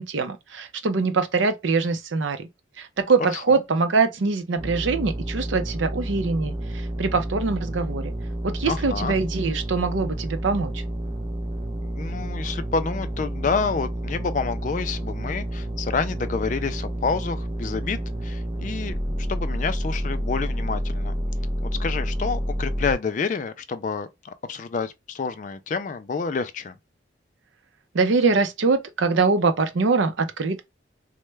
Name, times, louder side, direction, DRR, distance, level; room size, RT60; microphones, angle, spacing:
voice 1, 0.0-2.5 2.8-8.1 8.4-10.8 27.9-30.6, right 4 dB, 75° right, 0.5 m, -23 dB
sound 1, 4.6-22.9, right 1 dB, 25° right, 0.6 m, -29 dB
voice 2, 8.7-9.1 11.8-21.1 21.6-26.7, left 5 dB, 40° left, 0.3 m, -29 dB
3.1 x 2.1 x 3.2 m
head